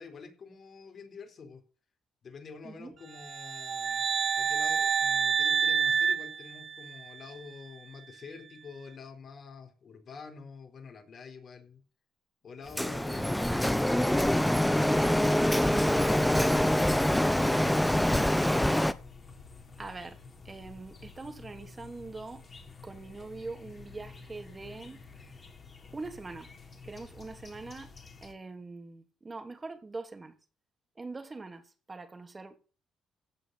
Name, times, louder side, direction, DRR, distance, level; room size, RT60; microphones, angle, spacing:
voice 1, 0.0-1.6 2.2-4.1 4.4-11.8 12.4-16.9, left 4 dB, 50° left, 4.2 m, -47 dB
sound 1, 3.2-7.2, right 6 dB, 55° right, 0.7 m, -28 dB
Printer, 12.8-18.9, left 1 dB, 5° left, 1.1 m, -25 dB
sound 2, 14.8-28.3, left 4 dB, 35° left, 3.8 m, -50 dB
voice 2, 19.8-20.2 20.4-22.4 22.8-25.3 25.9-26.5 26.8-27.9 28.2-30.4 30.9-32.6, right 3 dB, 25° right, 3.0 m, -43 dB
16.5 x 5.8 x 7.9 m
cardioid pair, 90°, 0 cm